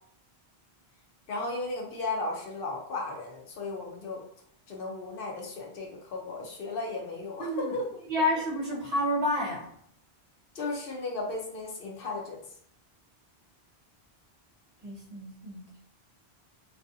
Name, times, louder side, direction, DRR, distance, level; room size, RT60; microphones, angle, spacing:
voice 1, 1.3-4.2 4.7-8.3 10.5-12.4, left 3 dB, 65° left, 0 dB, 0.7 m, -35 dB
voice 2, 7.4-7.8 8.1-9.7 14.8-15.8, left 1 dB, 45° right, -3 dB, 0.6 m, -29 dB
2.4 x 2.3 x 2.5 m, 0.66 s
omnidirectional pair, 1.1 m